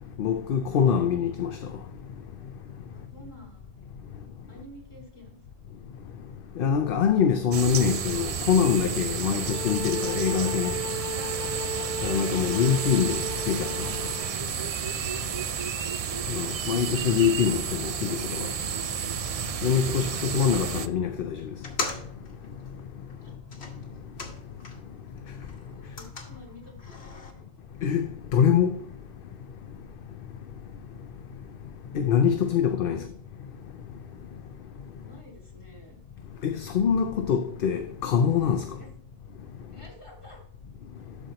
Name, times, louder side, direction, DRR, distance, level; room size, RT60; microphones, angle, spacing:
voice 1, 0.2-1.5 6.6-10.7 12.0-13.7 16.3-18.5 19.6-21.4 27.8-28.1 28.3-28.8 31.9-33.0 36.4-38.6, left 7 dB, 65° left, 0.8 m, -24 dB
voice 2, 2.9-3.8 4.5-5.4 11.8-11.9 14.4-14.6 15.2-17.0 23.2-23.4 25.6-27.6 32.4-32.6 32.9-33.1 34.9-36.0 38.7-38.9 39.7-40.4, equal, 30° left, 2.9 m, -51 dB
sound 1, 7.5-20.9, right 7 dB, 55° right, 0.4 m, -31 dB
sound 2, 9.3-14.3, left 1 dB, 70° right, 2.0 m, -35 dB
sound 3, 21.5-25.0 25.3-27.3, left 3 dB, 85° left, 1.5 m, -39 dB
12.5 x 4.4 x 2.9 m
omnidirectional pair, 1.1 m